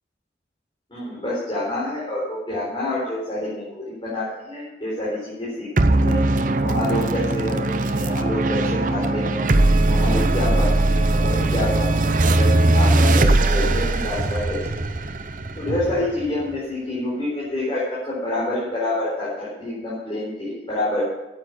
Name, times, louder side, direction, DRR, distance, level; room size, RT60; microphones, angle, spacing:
voice 1, 0.9-6.2 6.6-9.4 9.9-14.8 15.5-21.0, left 1 dB, 25° left, -8 dB, 4.1 m, -27 dB
sound 1, 5.8-16.5, right 2 dB, 45° right, 0.7 m, -20 dB
9.1 x 8.7 x 8.4 m, 1.0 s
head